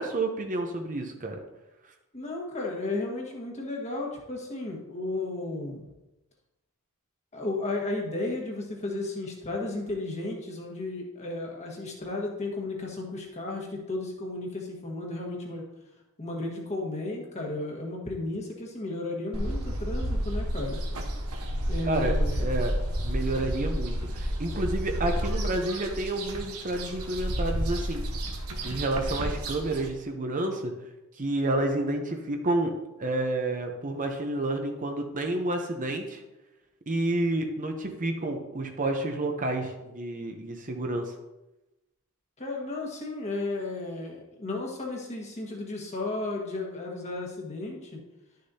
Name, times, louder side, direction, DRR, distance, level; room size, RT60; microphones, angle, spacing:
voice 1, 0.0-1.4 21.9-22.1 22.4-22.7 23.0-28.0 28.6-30.7 31.2-32.7 33.0-36.2 36.9-41.1, right 2 dB, 35° right, 4 dB, 0.8 m, -30 dB
voice 2, 2.1-5.8 7.3-15.6 16.2-20.8 21.7-22.5 42.4-48.0, left 2 dB, 30° left, -1 dB, 1.6 m, -34 dB
sound 1, 19.3-29.9, equal, 85° right, 1.3 m, -31 dB
11.5 x 6.5 x 2.8 m, 0.99 s
head